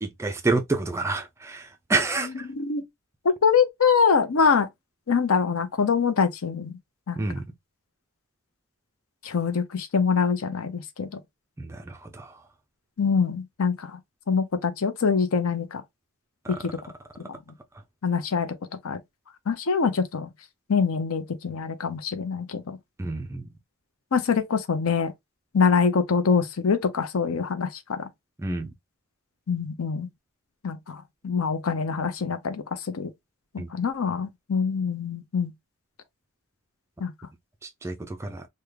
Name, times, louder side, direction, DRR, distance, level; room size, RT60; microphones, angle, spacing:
voice 1, 0.0-2.5 7.2-7.4 11.6-12.4 16.4-16.6 23.0-23.5 28.4-28.7 33.6-33.7 37.6-38.5, right 3 dB, 10° right, 0.3 m, -29 dB
voice 2, 3.4-4.7 5.1-6.8 7.1-7.2 9.2-11.2 13.0-14.0 14.3-15.8 16.5-16.6 17.2-17.3 18.0-18.5 18.8-19.0 19.5-20.3 20.7-22.8 24.1-25.1 25.5-28.1 29.5-30.1 30.6-33.1 33.7-35.5 37.0-37.1, left 5 dB, 70° left, 0.6 m, -24 dB
3.5 x 2.2 x 3.2 m
head